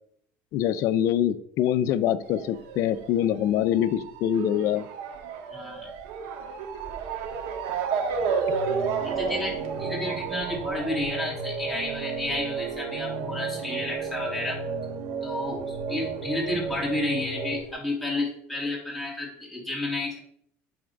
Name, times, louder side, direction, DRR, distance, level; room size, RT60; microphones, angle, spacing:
voice 1, 0.5-4.8, left 10 dB, 60° left, 13 dB, 0.5 m, -24 dB
Motor vehicle (road) / Siren, 2.2-15.2 15.5-16.7 17.3-17.4 17.7-17.8, right 5 dB, 90° right, 1.4 m, -33 dB
voice 2, 5.5-5.9 9.0-14.6 15.2-20.2, left 2 dB, ahead, -5 dB, 2.6 m, -31 dB
sound 1, 8.5-17.6, right 5 dB, 60° right, 1.3 m, -33 dB
8.5 x 3.4 x 5.3 m, 0.66 s
cardioid pair, 135°, 6 cm